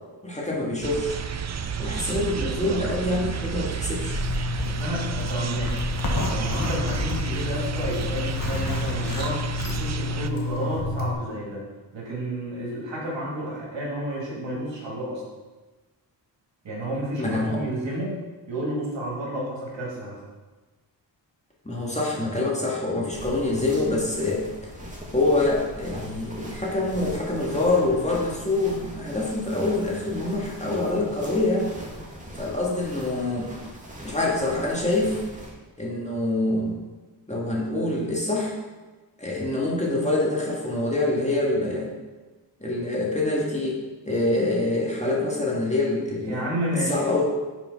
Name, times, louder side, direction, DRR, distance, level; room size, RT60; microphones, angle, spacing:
voice 1, 0.2-1.2 1.8-4.2 17.2-17.6 21.6-24.4 25.1-31.7 32.4-33.5 34.0-35.2 35.8-36.8 37.3-38.6 39.2-41.9 42.6-43.8 44.1-46.4 46.9-47.3, left 2 dB, 15° left, -4 dB, 2.1 m, -25 dB
sound 1, 0.8-10.3, right 7 dB, 35° right, 0.5 m, -32 dB
voice 2, 2.1-3.1 3.3-3.5 4.6-5.9 6.3-11.6 11.9-15.2 16.6-18.2 18.5-20.2 46.2-47.0, right 1 dB, 70° right, -3 dB, 2.2 m, -31 dB
Zipper (clothing), 3.9-11.1, left 2 dB, 45° left, 1.4 m, -28 dB
sound 2, 23.1-35.5, equal, 15° right, 2.2 m, -40 dB
5.9 x 4.5 x 5.4 m, 1.2 s
cardioid pair, 45°, 45 cm